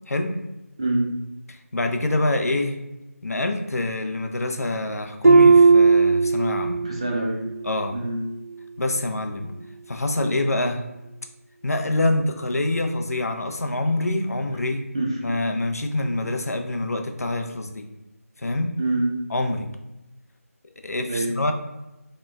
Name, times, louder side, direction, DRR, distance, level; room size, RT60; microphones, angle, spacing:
voice 1, 0.1-0.4 1.5-2.8 3.2-6.9 7.6-8.0 8.8-9.5 9.9-10.8 11.6-14.9 15.2-17.9 18.4-18.7 19.3-19.7 20.6-21.5, left 2 dB, 75° left, 5 dB, 0.5 m, -26 dB
voice 2, 0.8-1.1 6.8-7.5 7.9-8.2 14.9-15.2 18.8-19.1 21.1-21.3, right 2 dB, 20° right, -3 dB, 0.4 m, -25 dB
Harp, 5.2-7.0 7.4-7.8 8.3-8.4, right 4 dB, 75° right, 0.7 m, -16 dB
2.9 x 2.1 x 3.3 m, 0.97 s
figure-of-eight pair, 170°, 8 cm